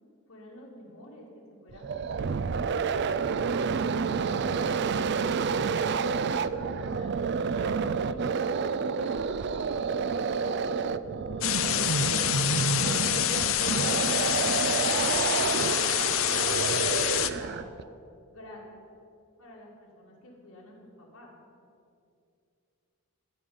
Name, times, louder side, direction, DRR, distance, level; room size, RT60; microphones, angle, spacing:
voice 1, 0.3-3.2 3.7-7.1 7.5-9.2 10.3-12.0 13.2-14.9 15.3-16.8 17.1-17.7 18.3-18.8 19.4-21.3, left 1 dB, 80° left, -5 dB, 2.8 m, -48 dB
sound 1, 1.7-17.8, right 5 dB, 50° right, 0.4 m, -29 dB
sound 2, 11.4-17.3, left 12 dB, 60° left, 0.6 m, -27 dB
15.0 x 5.3 x 9.6 m, 2.5 s
head